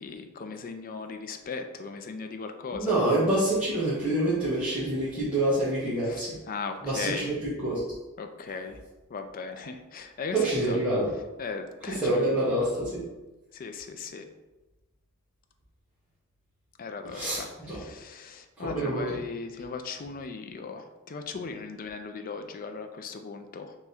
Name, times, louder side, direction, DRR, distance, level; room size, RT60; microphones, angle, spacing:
voice 1, 0.0-3.0 6.0-7.3 8.2-8.8 9.1-10.8 11.4-12.3 13.5-14.3 16.8-23.8, left 4 dB, 40° left, 6 dB, 0.4 m, -38 dB
voice 2, 2.7-6.4 6.8-7.8 10.3-11.1 12.0-13.0 17.1-17.8 18.6-19.0, right 1 dB, 5° right, -13 dB, 1.2 m, -26 dB
3.5 x 3.0 x 4.2 m, 1.1 s
head